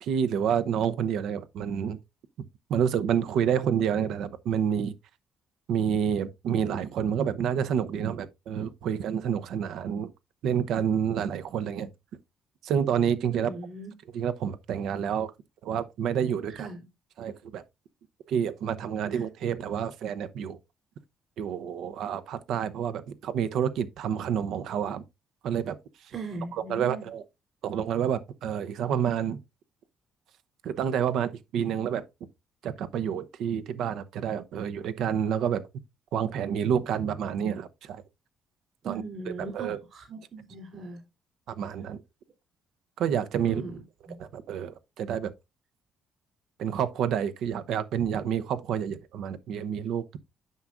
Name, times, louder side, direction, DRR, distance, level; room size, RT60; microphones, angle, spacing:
voice 1, 0.0-2.0 2.7-4.9 5.7-10.1 10.4-11.9 12.6-13.5 14.1-15.3 15.6-16.7 17.2-17.6 18.3-20.6 21.4-25.0 25.4-25.8 26.5-27.2 27.6-29.4 30.6-32.0 32.6-35.6 36.1-38.0 38.8-39.8 41.5-42.0 43.0-43.6 44.2-45.3 46.6-50.2, right 8 dB, 75° right, 0.7 m, -29 dB
voice 2, 13.3-13.9 16.5-16.9 19.1-19.3 26.1-27.1 38.8-41.0 43.5-43.8 44.1-44.2, right 4 dB, 55° right, 3.4 m, -38 dB
9.3 x 6.1 x 2.5 m
cardioid pair, 110°, 0 cm